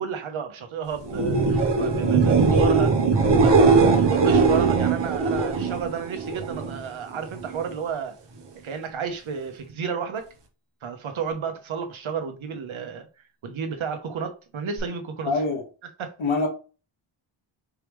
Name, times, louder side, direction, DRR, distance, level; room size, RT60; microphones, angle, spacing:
voice 1, 0.0-3.0 3.3-8.1 8.6-10.3 10.8-13.1 13.4-15.3 16.0-16.1, right 6 dB, 75° right, 1.0 m, -31 dB
sound 1, 1.0-6.8 7.2-7.7 14.8-14.9, right 4 dB, 60° right, 0.9 m, -20 dB
voice 2, 15.2-15.6 16.2-16.5, left 3 dB, 75° left, 1.8 m, -24 dB
4.6 x 3.5 x 3.1 m
wide cardioid pair, 160°, 48 cm